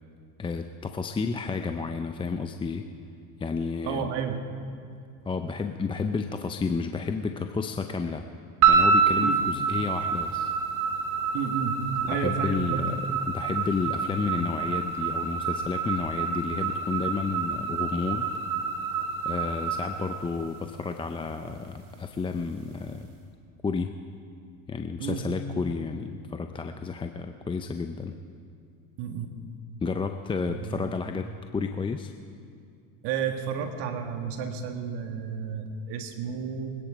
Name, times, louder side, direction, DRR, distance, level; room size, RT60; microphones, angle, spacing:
voice 1, 0.4-2.9 3.4-4.1 5.3-8.2 8.7-10.6 12.1-18.3 19.2-23.1 23.6-23.9 24.7-28.1 29.8-32.1, left 4 dB, 10° left, 6 dB, 0.5 m, -31 dB
voice 2, 3.8-4.4 9.2-9.4 11.3-12.8 25.0-25.2 29.0-29.3 30.5-30.9 33.0-36.8, right 6 dB, 65° right, 5 dB, 1.9 m, -31 dB
sound 1, 8.6-20.9, right 5 dB, 85° right, 2.6 m, -27 dB
24.0 x 10.0 x 5.1 m, 2.4 s
supercardioid pair, 105°, 43 cm